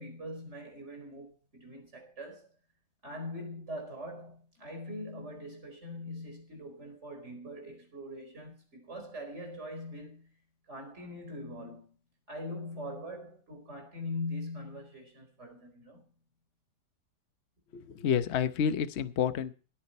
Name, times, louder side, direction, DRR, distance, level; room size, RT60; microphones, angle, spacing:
voice 1, 0.0-2.5 3.0-10.3 10.7-11.9 12.3-16.0, left 1 dB, 40° right, 4.8 m, -42 dB
voice 2, 17.7-19.5, left 8 dB, 50° left, 0.9 m, -29 dB
17.5 x 9.6 x 4.2 m
omnidirectional pair, 1.8 m